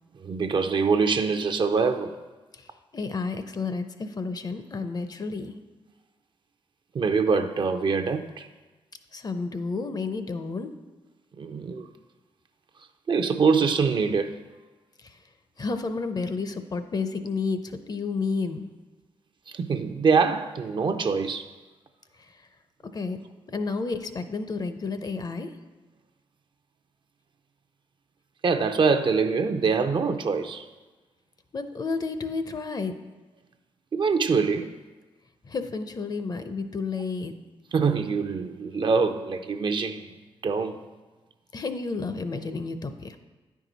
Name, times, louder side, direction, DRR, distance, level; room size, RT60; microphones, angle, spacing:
voice 1, 0.1-2.2 6.9-8.5 11.4-11.9 13.1-14.4 19.5-21.5 28.4-30.7 33.9-34.7 37.7-40.2 40.4-40.8, right 5 dB, 50° right, 8 dB, 0.5 m, -24 dB
voice 2, 2.5-5.6 9.1-10.7 15.0-15.2 15.6-18.7 22.2-22.5 22.9-23.2 23.5-25.5 31.5-32.9 35.4-37.3 41.5-43.2, left 4 dB, 40° left, 9 dB, 0.6 m, -31 dB
9.5 x 4.7 x 3.9 m, 1.2 s
cardioid pair, 65°, 11 cm